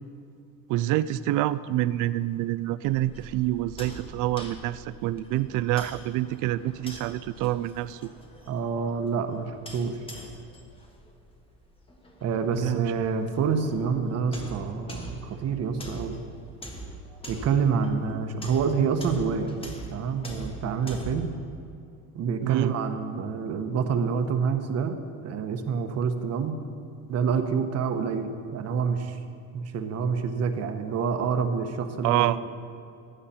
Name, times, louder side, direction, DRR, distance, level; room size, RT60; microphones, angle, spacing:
voice 1, 0.7-8.1 12.5-12.8 22.4-22.7 32.0-32.4, right 14 dB, 60° right, 16 dB, 0.5 m, -27 dB
sound 1, 2.8-21.3, right 1 dB, 15° left, 1.4 m, -43 dB
voice 2, 8.5-10.0 12.2-16.2 17.3-19.6 19.9-21.3 22.1-25.0 25.2-26.6 27.1-29.2 29.5-32.4, right 6 dB, 45° right, 7 dB, 1.1 m, -27 dB
15.5 x 11.0 x 4.3 m, 2.6 s
cardioid pair, 145°, 34 cm